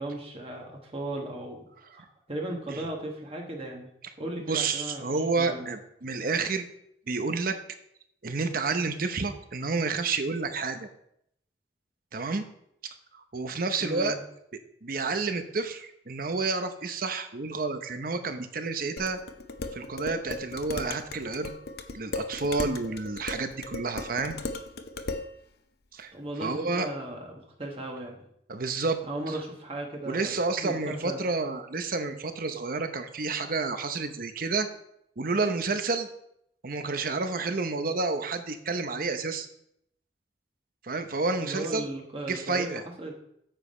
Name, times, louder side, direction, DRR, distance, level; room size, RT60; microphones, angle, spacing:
voice 1, 0.0-1.6 1.9-3.9 4.2-5.7 13.8-14.2 26.1-27.3 27.6-28.1 29.1-31.2 41.4-43.1, right 1 dB, 30° right, 0 dB, 1.4 m, -36 dB
voice 2, 4.4-6.7 7.1-7.6 8.2-10.9 12.1-12.4 13.1-14.2 14.8-19.2 19.7-21.5 21.9-24.4 25.9-26.1 26.4-26.9 28.5-29.0 29.3-29.4 30.1-34.7 35.2-36.1 36.6-39.5 40.8-41.9 42.3-42.8, right 3 dB, 50° right, 8 dB, 0.8 m, -30 dB
Dishes pots and pans, 19.0-25.3, left 3 dB, 60° left, 0.7 m, -37 dB
9.0 x 7.2 x 4.3 m, 0.74 s
head